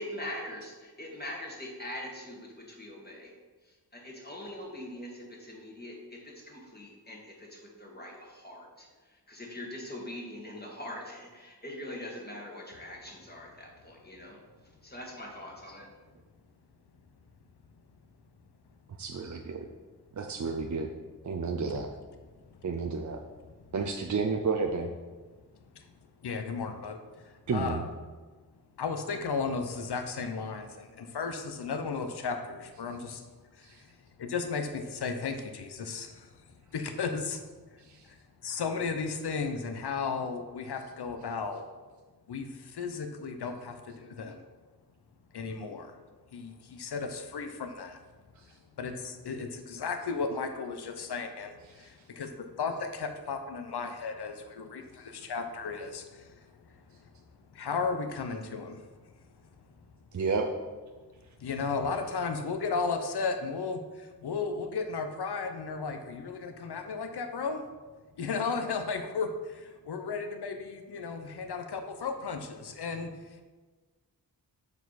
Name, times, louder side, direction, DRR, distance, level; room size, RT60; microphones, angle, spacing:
voice 1, 0.0-3.3 3.6-14.4 14.8-15.9, left 1 dB, 25° left, -1 dB, 1.7 m, -42 dB
voice 2, 19.0-19.6 20.2-20.9 21.2-21.9 22.6-23.2 23.7-24.9 27.5-27.8 60.1-60.5, right 4 dB, 50° right, 2 dB, 0.5 m, -30 dB
voice 3, 26.2-27.9 28.8-33.2 33.5-33.9 34.2-36.4 36.7-37.4 37.7-41.6 42.3-44.4 45.3-46.0 46.3-48.0 48.8-57.1 57.5-58.8 61.4-67.6 68.2-73.4, left 4 dB, 80° left, 6 dB, 0.7 m, -35 dB
6.8 x 4.7 x 4.1 m, 1.4 s
wide cardioid pair, 55°, 39 cm